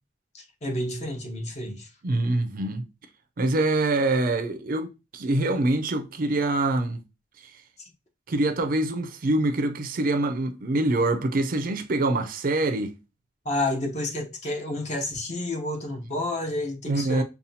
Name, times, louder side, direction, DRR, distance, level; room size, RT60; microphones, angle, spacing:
voice 1, 0.3-1.9 7.8-7.9 13.4-17.2, left 1 dB, 40° left, 0.8 m, -30 dB
voice 2, 2.0-2.9 3.4-4.9 5.1-7.0 8.3-13.0 16.9-17.2, right 2 dB, 50° right, 0.5 m, -25 dB
5.5 x 2.3 x 2.7 m
head